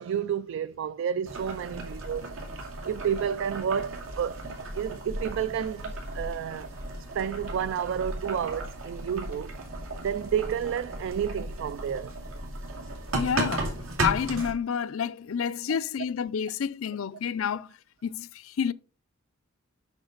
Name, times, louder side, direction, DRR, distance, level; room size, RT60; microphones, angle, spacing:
voice 1, 0.0-2.3 2.8-4.4 4.7-6.7 7.1-9.6 10.0-12.1, right 8 dB, 65° right, 0.3 m, -30 dB
Boiling, 1.3-14.5, right 2 dB, 85° right, 2.5 m, -35 dB
voice 2, 13.1-13.7 14.0-17.7 18.0-18.7, left 7 dB, 70° left, 0.4 m, -29 dB
8.1 x 5.9 x 3.9 m
head